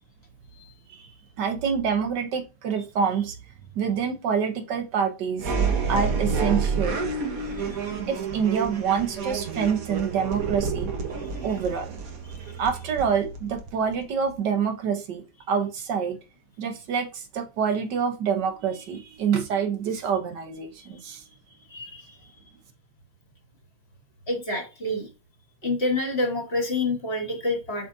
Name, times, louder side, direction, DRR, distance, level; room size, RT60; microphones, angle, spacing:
voice 1, 1.4-3.4 3.8-5.5 5.9-7.0 8.1-10.9 11.4-12.0 12.6-16.2 16.6-21.2, right 6 dB, 70° right, 7 dB, 1.4 m, -26 dB
sound 1, 5.4-14.0, right 5 dB, 50° right, 1.4 m, -29 dB
voice 2, 21.7-22.1 24.3-25.1 25.6-27.9, left 2 dB, 35° left, 2 dB, 1.6 m, -28 dB
7.4 x 5.3 x 2.6 m, 0.29 s
omnidirectional pair, 2.0 m